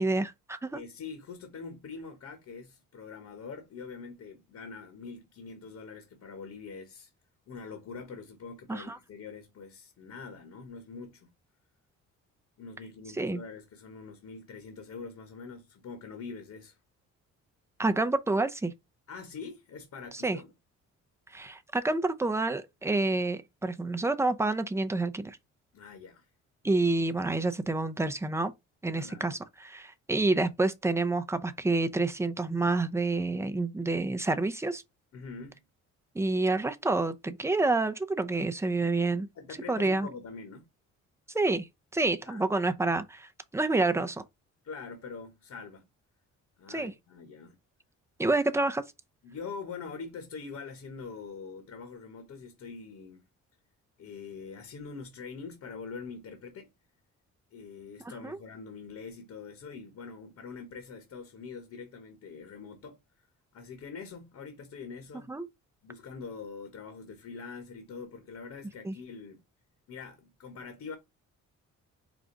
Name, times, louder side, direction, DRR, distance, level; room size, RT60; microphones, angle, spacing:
voice 1, 0.0-0.8 8.7-9.0 13.2-13.4 17.8-18.7 20.2-20.4 21.3-25.4 26.6-28.5 28.8-34.8 36.1-39.3 39.7-40.1 41.3-41.7 41.9-44.2 46.7-46.9 48.2-48.8 58.0-58.4 65.3-65.5 68.8-68.9, right 2 dB, 10° right, 0.6 m, -28 dB
voice 2, 0.7-7.1 7.5-11.3 12.6-16.8 19.1-20.5 25.7-26.3 29.0-29.4 35.1-35.6 39.3-40.6 42.2-42.5 44.6-45.8 46.6-47.5 49.2-53.2 54.0-56.7 57.5-63.0 63.5-65.3 65.8-69.4 69.9-71.0, left 5 dB, 65° left, 1.3 m, -44 dB
5.0 x 2.3 x 3.8 m
cardioid pair, 90°, 30 cm